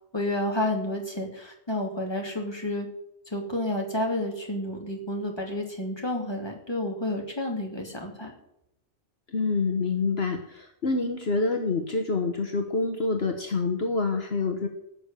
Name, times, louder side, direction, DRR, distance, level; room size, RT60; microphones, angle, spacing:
voice 1, 0.1-2.9 3.3-8.3, left 1 dB, 20° left, 1 dB, 3.0 m, -30 dB
voice 2, 9.3-14.7, left 3 dB, 60° left, 4 dB, 1.6 m, -27 dB
18.0 x 6.7 x 9.1 m, 0.79 s
omnidirectional pair, 1.2 m